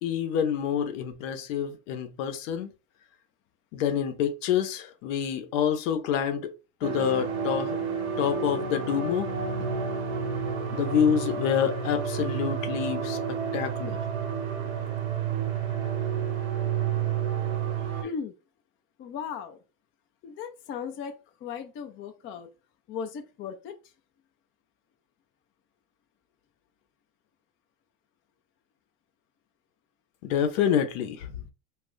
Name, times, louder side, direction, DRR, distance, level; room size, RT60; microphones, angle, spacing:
voice 1, 0.0-2.7 3.7-6.5 6.8-7.8 8.2-9.3 10.7-14.0 30.2-31.3, left 8 dB, 65° left, 0.8 m, -27 dB
sound 1, 6.8-18.0, right 6 dB, 80° right, 0.9 m, -30 dB
voice 2, 17.9-18.3 19.0-19.6 20.2-21.1 21.4-22.5 22.9-23.8, left 6 dB, 30° left, 0.5 m, -37 dB
2.4 x 2.1 x 3.7 m
hypercardioid pair, 85°, 42 cm